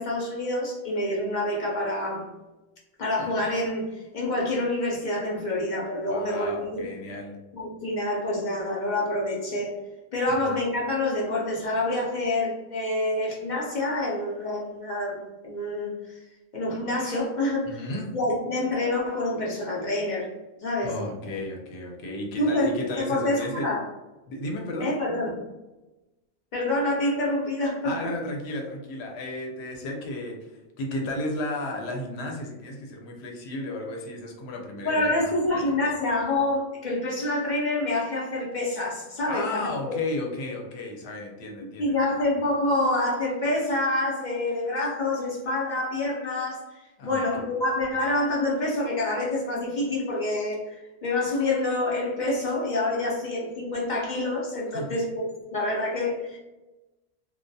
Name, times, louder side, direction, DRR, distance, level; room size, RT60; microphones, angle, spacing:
voice 1, 0.0-2.3 3.0-6.9 7.5-9.7 10.1-16.2 16.5-17.9 18.1-20.3 20.6-21.0 22.4-22.7 23.0-23.8 24.8-25.4 26.5-28.1 34.8-39.6 39.9-40.0 41.8-56.4, left 2 dB, 50° left, -4 dB, 0.6 m, -27 dB
voice 2, 6.1-7.4 10.4-10.5 17.7-18.1 20.8-23.7 24.3-24.9 27.8-35.1 35.5-35.8 39.3-42.0 47.0-47.2 54.7-55.0, left 1 dB, 75° left, 1 dB, 0.8 m, -34 dB
2.2 x 2.2 x 2.6 m, 1.1 s
omnidirectional pair, 1.1 m